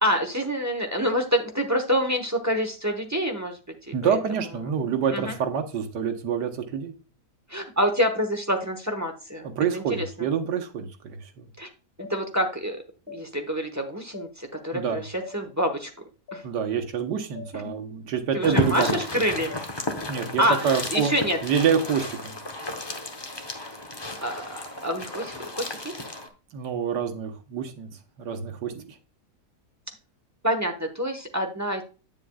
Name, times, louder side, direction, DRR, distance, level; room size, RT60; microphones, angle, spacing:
voice 1, 0.0-3.5 4.0-4.2 5.1-5.3 7.5-10.1 11.6-11.7 12.0-12.8 13.1-15.0 15.3-16.4 17.6-17.7 18.3-19.6 20.4-21.4 23.6-23.7 24.2-25.9 30.4-31.8, equal, 15° right, 4 dB, 0.7 m, -27 dB
voice 2, 3.9-6.9 9.4-11.5 14.7-15.0 16.4-19.0 20.1-21.1 21.4-22.4 26.5-29.0, right 7 dB, 85° right, 5 dB, 1.6 m, -27 dB
sound 1, 12.0-12.2 13.1-13.2 14.1-14.3 15.2-15.4 16.3-16.4 17.4-17.5 18.4-18.6 19.5-19.7, left 5 dB, 60° left, 1.7 m, -41 dB
sound 2, 18.4-26.3, left 2 dB, 25° left, 0.6 m, -33 dB
8.6 x 7.5 x 2.3 m, 0.34 s
omnidirectional pair, 1.8 m